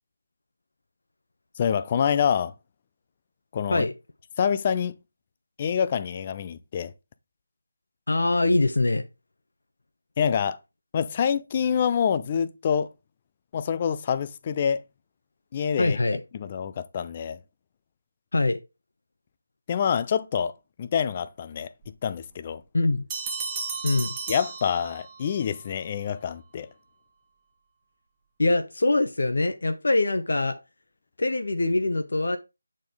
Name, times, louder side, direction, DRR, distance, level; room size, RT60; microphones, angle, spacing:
voice 1, 1.6-2.5 3.5-3.9 4.4-5.0 5.6-6.9 10.2-10.6 10.9-12.9 13.5-14.8 15.5-16.0 16.3-17.4 19.7-20.5 20.8-21.7 22.0-22.6 24.3-26.7, left 7 dB, 25° left, 0.4 m, -26 dB
voice 2, 8.1-9.0 15.8-16.2 18.3-18.6 22.7-23.0 23.8-24.2 28.4-30.6 31.2-32.4, left 2 dB, 55° left, 0.8 m, -23 dB
sound 1, 23.1-25.3, right 5 dB, 15° right, 1.3 m, -34 dB
8.9 x 4.3 x 3.7 m
figure-of-eight pair, 160°, 0 cm